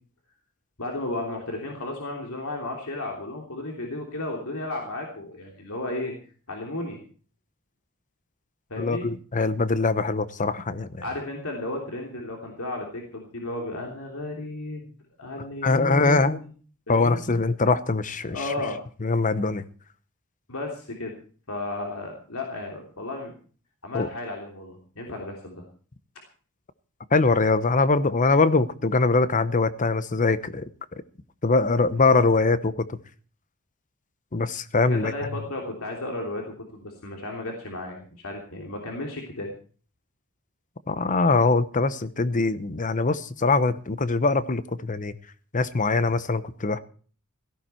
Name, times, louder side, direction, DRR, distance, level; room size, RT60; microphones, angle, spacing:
voice 1, 0.8-6.1 6.5-7.0 8.7-9.1 11.0-14.9 15.2-16.5 16.9-17.2 18.3-18.8 20.5-21.1 21.5-23.3 23.8-25.6 34.9-39.5, left 2 dB, 70° left, 0 dB, 3.2 m, -33 dB
voice 2, 8.8-10.9 15.6-16.4 16.9-18.4 19.0-19.6 23.9-24.1 27.1-30.7 31.4-33.0 34.3-35.1 40.9-45.1 45.5-46.8, left 3 dB, 35° left, 14 dB, 0.9 m, -22 dB
17.0 x 14.0 x 4.5 m, 0.42 s
head